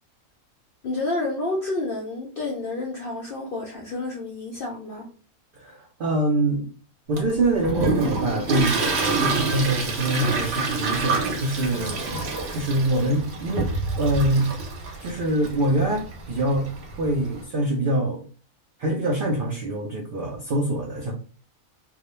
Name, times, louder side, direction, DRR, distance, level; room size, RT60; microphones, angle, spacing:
voice 1, 0.8-5.1, left 2 dB, 65° left, 0.5 m, -29 dB
voice 2, 5.5-6.7 7.1-12.1 12.5-13.7 14.0-14.5 15.0-16.7 17.0-18.2 18.8-21.1, right 1 dB, 85° right, 0.4 m, -24 dB
Toilet flush, 7.2-17.4, right 3 dB, 60° right, 0.8 m, -28 dB
2.3 x 2.1 x 2.9 m
omnidirectional pair, 1.5 m